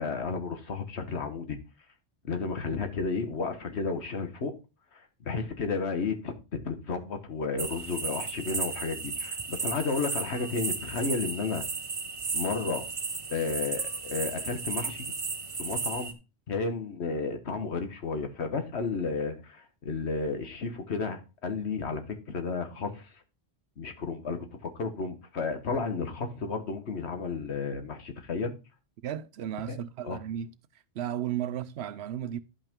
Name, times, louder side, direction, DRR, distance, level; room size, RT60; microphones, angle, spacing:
voice 1, 0.0-1.6 2.2-4.5 5.2-11.6 12.3-12.8 13.3-15.1 15.6-16.2 16.5-23.1 23.8-28.5 29.7-29.8 30.0-30.2, left 4 dB, 70° left, 1.5 m, -32 dB
sound 1, 7.6-16.1, right 4 dB, 35° right, 0.8 m, -34 dB
voice 2, 29.0-30.5 31.0-32.4, right 10 dB, 70° right, 0.8 m, -34 dB
11.5 x 5.5 x 3.6 m
omnidirectional pair, 1.2 m